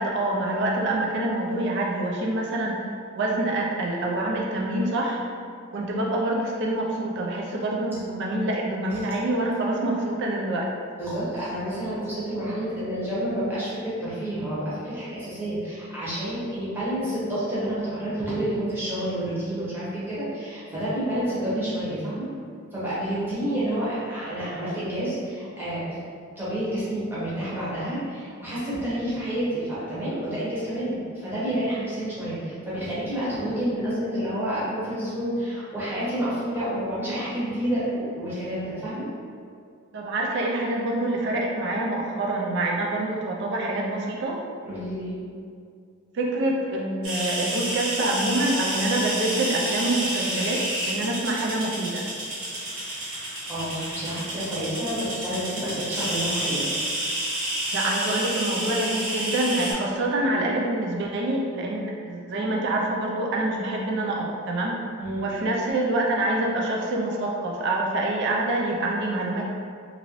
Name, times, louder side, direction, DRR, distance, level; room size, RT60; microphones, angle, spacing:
voice 1, 0.0-2.8 3.1-5.2 5.7-10.7 39.9-44.4 46.1-52.1 57.7-64.7 65.2-69.4, right 1 dB, 55° right, -1 dB, 0.3 m, -26 dB
voice 2, 11.0-22.3 22.7-26.0 26.3-39.1 44.6-45.2 52.9-53.0 53.5-56.7 65.0-65.3, right 1 dB, 10° right, -10 dB, 0.8 m, -29 dB
sound 1, 47.0-59.7, right 1 dB, 90° right, 1.1 m, -30 dB
2.8 x 2.6 x 2.9 m, 2.3 s
head